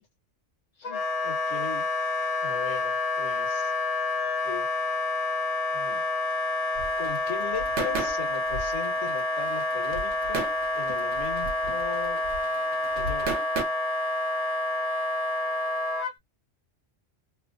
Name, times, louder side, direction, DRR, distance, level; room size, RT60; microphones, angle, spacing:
Wind instrument woodwind instrument, 0.8-16.1, left 2 dB, 85° left, 1.1 m, -28 dB
voice 1, 0.8-1.8 2.4-3.7 4.4-4.7 5.7-6.0 7.0-10.5 10.7-12.3 12.9-13.4, left 8 dB, 65° left, 1.6 m, -38 dB
sound 1, 6.7-13.6, right 3 dB, 65° right, 1.1 m, -35 dB
3.2 x 2.1 x 2.6 m
omnidirectional pair, 1.3 m